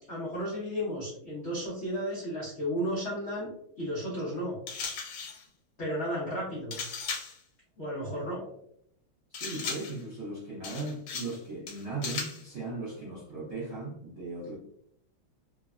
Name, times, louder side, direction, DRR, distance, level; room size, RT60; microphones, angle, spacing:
voice 1, 0.1-3.5 3.8-4.6 5.8-6.7 7.8-8.5, equal, 70° left, -6 dB, 0.6 m, -33 dB
sound 1, 4.7-5.4 6.7-7.4 9.3-10.0 10.6-11.4 11.7-12.4, left 5 dB, 90° left, 1.5 m, -37 dB
voice 2, 9.3-14.6, right 3 dB, 70° right, -7 dB, 0.6 m, -38 dB
3.3 x 2.1 x 2.3 m, 0.73 s
omnidirectional pair, 2.2 m